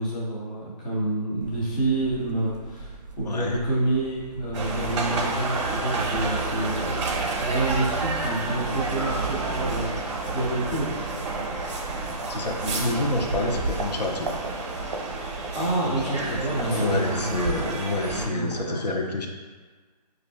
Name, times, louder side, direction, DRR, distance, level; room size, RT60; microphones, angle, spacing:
voice 1, 0.0-10.9 15.5-17.7 18.1-18.8, right 2 dB, 15° left, -6 dB, 0.3 m, -28 dB
sound 1, 1.4-18.2, right 4 dB, 85° right, 0.4 m, -43 dB
voice 2, 3.2-3.6 8.1-8.2 12.3-14.4 15.8-19.3, left 2 dB, 85° left, 1 dB, 0.7 m, -28 dB
sound 2, 4.3-14.9, equal, 50° left, 0.8 m, -48 dB
sound 3, 4.5-18.3, right 3 dB, 45° right, 0.6 m, -30 dB
5.1 x 2.5 x 2.2 m, 1.4 s
hypercardioid pair, 150°, 21 cm